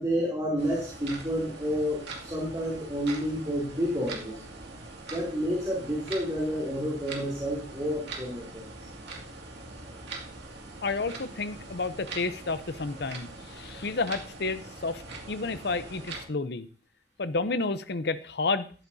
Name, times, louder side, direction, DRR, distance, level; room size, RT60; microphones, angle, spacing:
voice 1, 0.0-4.3 5.1-8.7, equal, 20° right, -4 dB, 3.0 m, -30 dB
sound 1, 0.6-16.3, right 3 dB, 65° right, 2.3 m, -43 dB
voice 2, 10.8-15.0 15.3-16.7 17.2-18.7, left 3 dB, 60° left, 12 dB, 0.7 m, -31 dB
14.5 x 12.0 x 2.8 m, 0.40 s
head